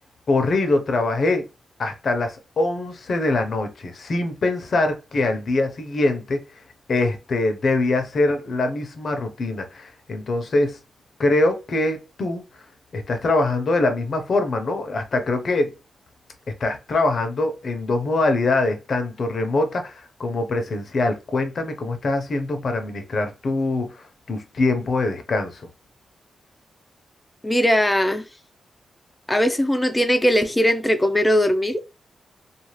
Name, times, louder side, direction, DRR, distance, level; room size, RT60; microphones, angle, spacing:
voice 1, 0.3-1.4 1.8-6.4 6.9-10.8 11.2-12.4 12.9-15.7 16.6-25.7, left 2 dB, 60° left, 0.7 m, -23 dB
voice 2, 27.4-28.3 29.3-31.9, equal, 15° left, 0.5 m, -20 dB
2.4 x 2.4 x 3.2 m
cardioid pair, 75°, 0 cm